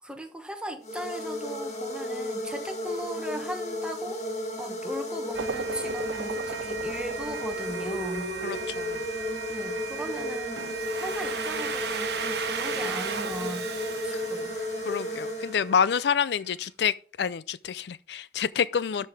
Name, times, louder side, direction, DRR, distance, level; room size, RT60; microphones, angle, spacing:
voice 1, 0.0-4.2 4.6-8.3 9.5-10.6 10.9-13.7 14.0-14.5, right 1 dB, 5° right, 1.2 m, -38 dB
sound 1, 0.8-16.0, left 1 dB, 40° left, 1.8 m, -34 dB
sound 2, 5.3-16.5, right 7 dB, 90° right, 0.5 m, -39 dB
voice 2, 8.4-9.0 14.1-14.2 14.8-19.1, left 7 dB, 70° left, 0.4 m, -28 dB
Domestic sounds home sounds, 10.6-15.3, right 6 dB, 65° right, 1.1 m, -35 dB
12.5 x 5.4 x 4.7 m
head